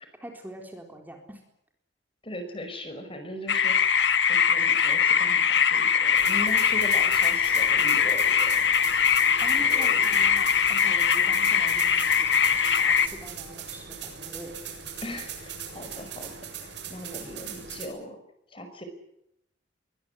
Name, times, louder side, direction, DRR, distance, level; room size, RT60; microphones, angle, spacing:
voice 1, 0.0-1.4 9.4-14.5, right 1 dB, 10° right, 3 dB, 3.9 m, -44 dB
voice 2, 2.2-3.9 4.3-8.6 9.5-10.0 15.0-16.3 16.6-18.2 18.5-18.9, equal, 30° left, 8 dB, 5.3 m, -39 dB
sound 1, 3.5-13.1, left 7 dB, 70° left, 1.6 m, -22 dB
sound 2, 6.2-17.8, right 7 dB, 70° right, 7.6 m, -40 dB
23.0 x 20.5 x 9.9 m, 0.77 s
head